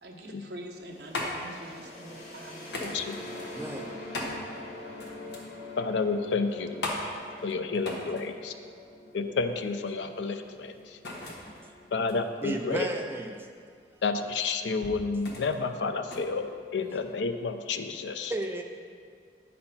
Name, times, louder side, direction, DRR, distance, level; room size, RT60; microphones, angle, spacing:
voice 1, 0.0-3.0 11.4-11.8, right 1 dB, 70° right, 1 dB, 0.9 m, -45 dB
sound 1, 0.6-17.2, left 1 dB, 75° left, 1.2 m, -40 dB
sound 2, 0.9-12.5, left 2 dB, 40° left, 2.1 m, -45 dB
voice 2, 2.8-3.2 5.8-6.8 7.4-8.6 9.1-11.0 11.9-12.9 14.0-18.3, left 4 dB, 90° left, 7 dB, 0.5 m, -30 dB
voice 3, 3.5-3.9 12.4-13.5 18.3-18.6, right 1 dB, 10° right, 2 dB, 0.4 m, -33 dB
8.7 x 4.2 x 5.6 m, 2.1 s
head